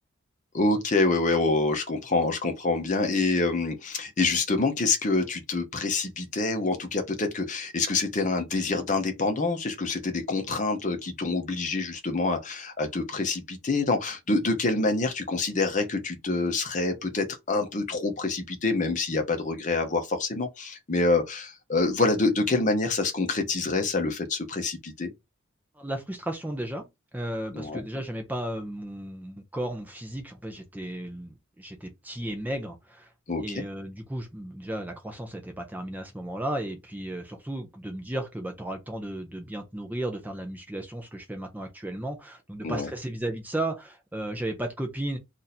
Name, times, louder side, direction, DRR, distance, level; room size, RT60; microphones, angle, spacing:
voice 1, 0.5-25.1 27.5-27.8 33.3-33.6 42.6-42.9, left 3 dB, 35° left, 0.7 m, -26 dB
voice 2, 25.8-33.1 33.4-45.2, right 1 dB, 10° right, 0.5 m, -34 dB
2.7 x 2.5 x 4.0 m
head